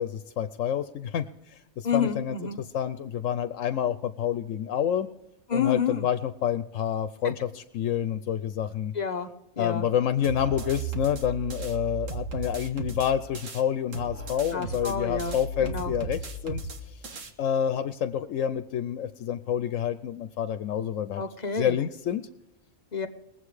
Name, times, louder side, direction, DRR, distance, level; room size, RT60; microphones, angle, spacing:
voice 1, 0.0-2.4 2.7-5.1 5.5-8.9 9.6-17.0 17.4-21.2 21.5-22.2, left 9 dB, 85° left, 11 dB, 1.0 m, -28 dB
voice 2, 1.8-2.6 5.5-6.1 7.2-7.3 8.9-9.3 9.6-9.9 14.5-15.9 21.2-21.8 22.9-23.1, left 6 dB, 40° left, 9 dB, 0.8 m, -29 dB
sound 1, 10.2-13.6 13.9-17.3, right 3 dB, 90° right, 1.7 m, -35 dB
21.5 x 8.0 x 4.9 m, 0.92 s
omnidirectional pair, 1.3 m